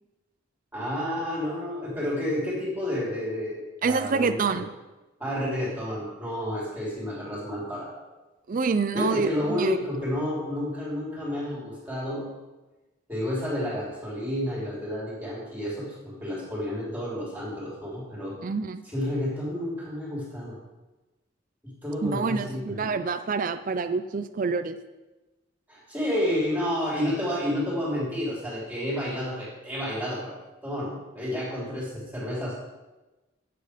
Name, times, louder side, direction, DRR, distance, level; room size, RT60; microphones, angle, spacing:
voice 1, 0.7-4.4 5.2-8.1 8.9-12.3 13.1-18.4 18.9-20.6 21.6-22.9 25.7-30.3 30.6-32.6, left 1 dB, 10° right, -6 dB, 3.5 m, -30 dB
voice 2, 3.8-4.7 8.5-9.8 18.4-18.8 22.0-24.8, right 4 dB, 45° right, 10 dB, 0.4 m, -27 dB
10.5 x 7.7 x 5.1 m, 1.1 s
head